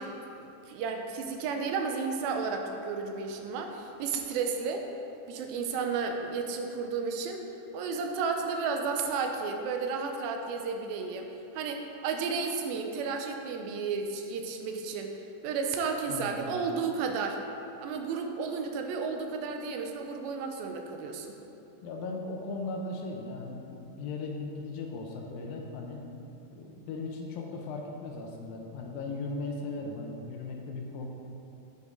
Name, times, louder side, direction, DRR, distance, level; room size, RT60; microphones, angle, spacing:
voice 1, 0.0-4.9 5.3-7.4 7.7-15.2 15.4-17.4 17.8-21.4, right 5 dB, 85° right, 4 dB, 2.4 m, -33 dB
voice 2, 16.1-16.5 21.8-26.0 26.5-31.1, left 3 dB, 80° left, 1 dB, 2.5 m, -37 dB
8.6 x 8.1 x 3.7 m, 2.9 s
omnidirectional pair, 4.2 m